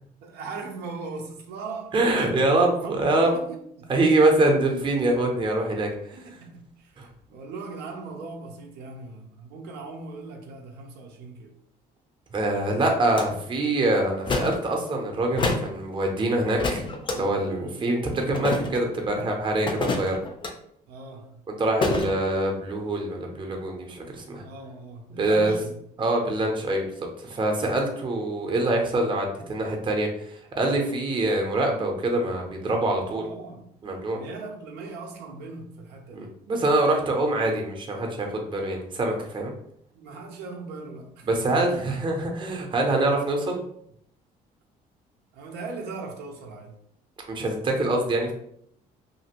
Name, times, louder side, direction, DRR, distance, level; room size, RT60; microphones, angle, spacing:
voice 1, 0.2-4.0 6.1-11.6 17.5-18.0 20.9-21.4 24.4-25.8 33.0-33.7 34.1-36.3 39.9-42.0 45.3-46.8, right 3 dB, 80° right, 0.5 m, -39 dB
voice 2, 1.9-3.3 3.9-6.2 7.0-7.1 12.3-16.9 17.1-20.2 21.5-24.4 25.2-25.5 26.0-26.9 27.2-33.2 33.8-34.2 36.1-39.5 41.2-43.6 47.3-48.3, right 2 dB, 30° right, 0.7 m, -24 dB
sound 1, 13.2-13.3 14.3-14.6 15.4-15.7 16.6-17.2 18.3-18.9 19.7-20.5 21.8-22.1, left 3 dB, 30° left, 0.5 m, -27 dB
2.6 x 2.4 x 2.9 m
cardioid pair, 110°, 17 cm